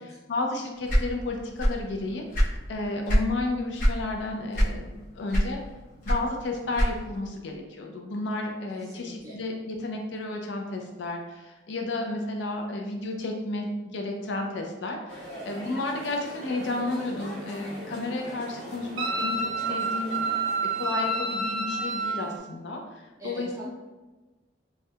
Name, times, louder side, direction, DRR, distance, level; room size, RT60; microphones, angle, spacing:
voice 1, 0.0-5.6 6.1-20.4 20.7-23.7, left 2 dB, 75° left, 2 dB, 0.4 m, -32 dB
sound 1, 0.9-1.9 2.2-3.3 3.8-4.0 4.5-5.0 5.3-7.2, equal, 45° left, 0.8 m, -23 dB
voice 2, 8.7-9.4 23.2-23.7, right 1 dB, 20° right, -5 dB, 0.6 m, -42 dB
sound 2, 15.1-22.4, equal, 10° left, 1.2 m, -42 dB
Wind instrument woodwind instrument, 19.0-22.2, right 2 dB, 85° right, 0.5 m, -28 dB
4.3 x 2.3 x 2.2 m, 1.2 s
head